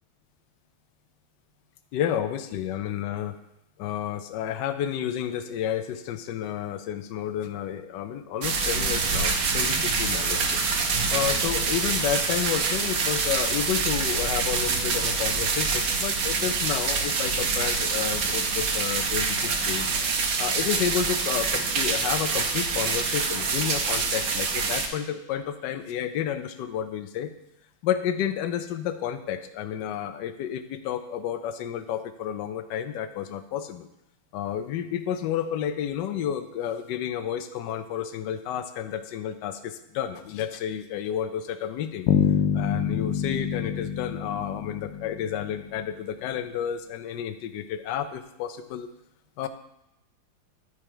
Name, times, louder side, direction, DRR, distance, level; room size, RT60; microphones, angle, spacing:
voice 1, 1.9-3.4 3.8-10.6 11.1-19.9 20.4-27.3 27.8-33.9 34.3-42.1 42.5-48.9 49.4-49.5, left 9 dB, 70° left, 10 dB, 1.1 m, -31 dB
sound 1, 8.4-24.9, right 4 dB, 60° right, 1.1 m, -26 dB
Bass guitar, 42.1-45.9, left 8 dB, 90° left, 1.5 m, -26 dB
11.0 x 4.8 x 4.5 m, 0.86 s
omnidirectional pair, 2.3 m